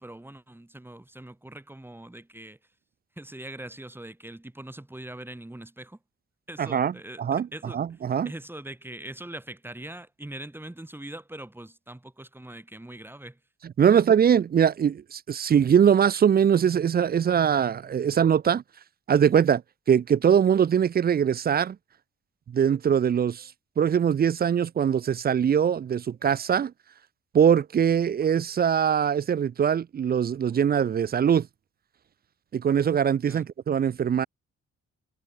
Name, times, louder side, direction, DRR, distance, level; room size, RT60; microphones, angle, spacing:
voice 1, 0.0-2.6 3.2-6.0 6.5-8.0 8.2-13.4 13.9-14.0 33.3-33.5, right 1 dB, 5° right, 7.8 m, -42 dB
voice 2, 6.6-6.9 7.2-7.5 7.7-8.3 13.8-18.6 19.1-19.6 19.9-21.8 22.5-23.5 23.8-26.7 27.3-31.5 32.5-34.3, right 8 dB, 35° right, 0.4 m, -22 dB
wide cardioid pair, 175°, 29 cm